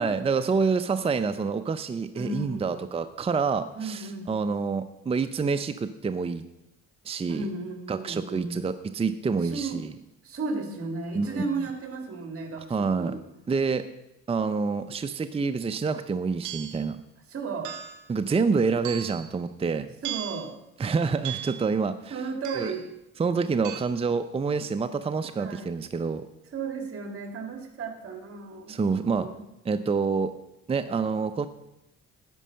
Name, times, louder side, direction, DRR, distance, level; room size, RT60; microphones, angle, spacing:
voice 1, 0.0-6.4 7.0-7.4 7.9-9.9 11.1-11.4 12.7-13.1 13.5-13.8 14.3-17.0 18.1-19.9 20.8-22.2 22.5-22.7 23.2-26.2 28.7-29.3 29.6-30.3 30.7-31.5, right 5 dB, 20° right, 10 dB, 0.5 m, -27 dB
voice 2, 2.1-2.9 3.7-4.3 7.3-8.6 9.4-9.8 10.2-13.2 17.3-17.7 20.0-20.6 22.1-22.9 25.4-25.7 26.5-29.4, right 3 dB, 50° right, 5 dB, 2.1 m, -34 dB
sound 1, 16.4-16.9 17.6-18.1 18.8-19.3 20.0-20.5 21.2-21.7 22.4-22.8 23.6-23.8, right 12 dB, 80° right, 1.0 m, -37 dB
11.0 x 5.5 x 7.5 m, 0.90 s
cardioid pair, 90°, 29 cm